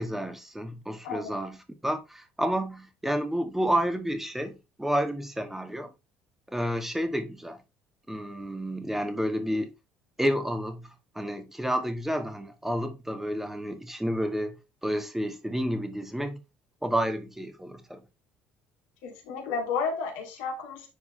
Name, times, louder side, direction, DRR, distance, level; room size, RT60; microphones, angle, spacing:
voice 1, 0.0-1.6 1.8-5.9 6.5-7.6 8.1-9.7 10.2-14.5 14.8-16.4 16.8-18.1, equal, 5° right, 1.8 m, -30 dB
voice 2, 19.0-20.9, left 5 dB, 75° left, 2.4 m, -32 dB
9.8 x 4.7 x 3.2 m
hypercardioid pair, 60°, 5 cm